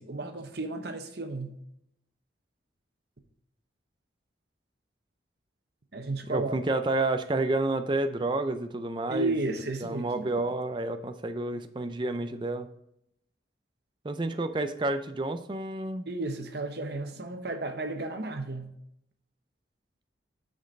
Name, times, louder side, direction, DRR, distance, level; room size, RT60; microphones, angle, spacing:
voice 1, 0.0-1.5 5.9-6.6 9.1-10.3 16.1-18.7, right 2 dB, 55° right, 6 dB, 1.0 m, -33 dB
voice 2, 6.3-9.3 9.8-12.7 14.0-16.1, right 2 dB, 25° right, 8 dB, 0.4 m, -30 dB
6.4 x 5.2 x 5.2 m, 0.77 s
head